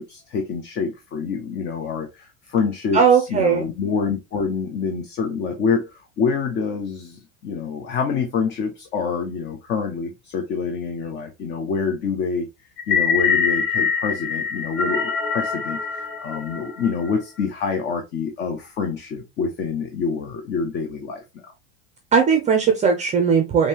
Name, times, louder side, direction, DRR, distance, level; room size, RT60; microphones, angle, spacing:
voice 1, 0.0-3.0 3.3-12.5 12.9-21.2, left 5 dB, 30° left, 4 dB, 0.7 m, -26 dB
voice 2, 2.9-3.7 22.1-23.7, right 6 dB, 20° right, 3 dB, 0.6 m, -18 dB
sound 1, 12.8-17.1, left 6 dB, 55° left, 2.6 m, -24 dB
5.2 x 2.8 x 2.9 m, 0.23 s
supercardioid pair, 160°, 37 cm